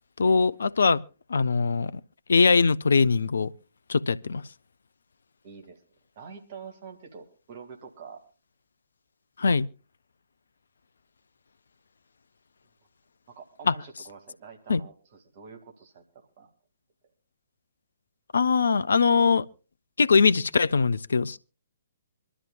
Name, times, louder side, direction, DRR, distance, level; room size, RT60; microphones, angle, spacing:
voice 1, 0.2-1.0 1.3-1.9 2.3-3.5 3.9-4.4 9.4-9.7 13.7-13.8 14.7-14.8 18.3-19.5 20.0-21.4, left 5 dB, 65° left, 0.6 m, -21 dB
voice 2, 5.4-5.8 6.2-8.2 13.3-16.0 16.4-16.5, right 6 dB, 40° right, 2.3 m, -46 dB
25.5 x 12.5 x 2.3 m
figure-of-eight pair, 130°, 0 cm